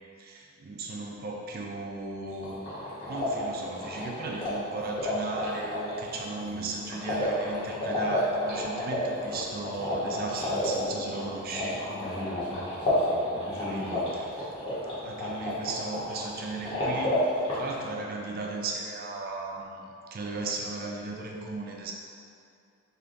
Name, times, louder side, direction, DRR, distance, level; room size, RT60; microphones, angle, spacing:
voice 1, 0.0-2.6 3.1-11.8 13.6-14.3 14.7-17.2 17.5-21.9, right 3 dB, 40° right, 0 dB, 0.4 m, -36 dB
sound 1, 2.3-17.9, left 1 dB, 25° left, 0.9 m, -31 dB
voice 2, 6.4-6.7 11.8-14.2, left 1 dB, 55° left, -14 dB, 1.0 m, -39 dB
3.4 x 2.7 x 3.8 m, 2.5 s
head